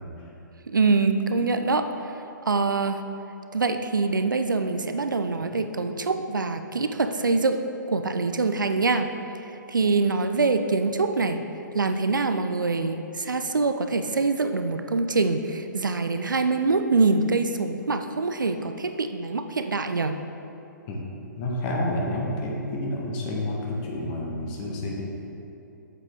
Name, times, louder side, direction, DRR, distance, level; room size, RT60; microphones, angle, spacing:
voice 1, 0.7-2.1 2.5-3.0 3.5-7.6 7.9-9.1 9.7-11.4 11.7-20.2, right 3 dB, 75° right, 8 dB, 0.4 m, -24 dB
voice 2, 21.4-25.0, left 1 dB, 30° left, -2 dB, 1.2 m, -29 dB
7.3 x 6.5 x 3.5 m, 2.9 s
figure-of-eight pair, 120°, 11 cm